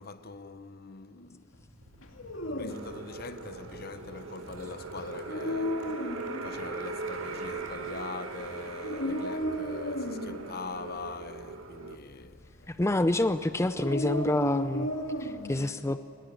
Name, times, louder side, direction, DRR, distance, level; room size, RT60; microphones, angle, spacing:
voice 1, 0.0-1.6 2.4-6.0 6.4-12.5, left 4 dB, 50° left, 0.9 m, -43 dB
sound 1, 1.5-7.9, right 1 dB, 45° right, 3.2 m, -54 dB
Dog, 2.0-15.7, left 1 dB, 75° left, 2.3 m, -36 dB
sound 2, 2.7-12.0, right 3 dB, 80° right, 1.7 m, -39 dB
voice 2, 12.7-14.9 15.2-16.0, left 1 dB, 15° left, 0.5 m, -27 dB
24.0 x 20.5 x 9.1 m
head